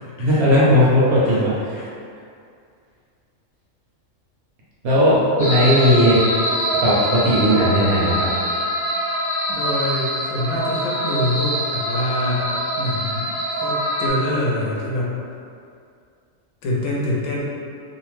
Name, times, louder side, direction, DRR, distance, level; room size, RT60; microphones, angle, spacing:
voice 1, 0.2-1.8 4.8-6.2 6.8-8.3, equal, 60° right, -7 dB, 0.8 m, -17 dB
sound 1, 5.4-14.1, equal, 20° left, 0.7 m, -24 dB
voice 2, 9.5-12.5 12.8-13.3 13.6-15.1 16.6-17.4, left 1 dB, 80° left, -4 dB, 1.0 m, -25 dB
2.7 x 2.1 x 3.1 m, 2.3 s
omnidirectional pair, 1.4 m